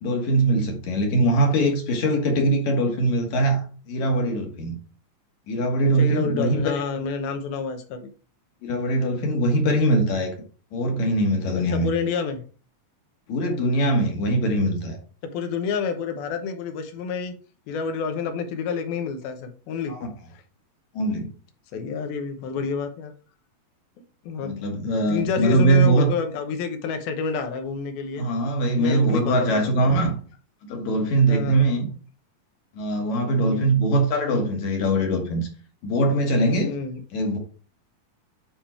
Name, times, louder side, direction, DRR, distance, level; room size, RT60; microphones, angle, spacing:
voice 1, 0.0-4.8 5.5-6.6 8.6-10.3 10.7-11.9 13.3-15.0 19.9-20.1 20.9-21.3 24.4-26.1 28.2-30.2 30.6-31.9 32.8-35.5 35.8-36.7 37.1-37.4, right 1 dB, 60° left, 2.4 m, -22 dB
voice 2, 6.0-8.1 11.5-12.4 15.2-17.3 17.7-19.9 20.3-20.4 21.7-23.1 24.2-28.3 28.8-30.1 31.3-31.7 33.4-33.7 36.7-37.0, left 5 dB, 80° left, 2.9 m, -29 dB
9.4 x 3.6 x 4.3 m
omnidirectional pair, 4.3 m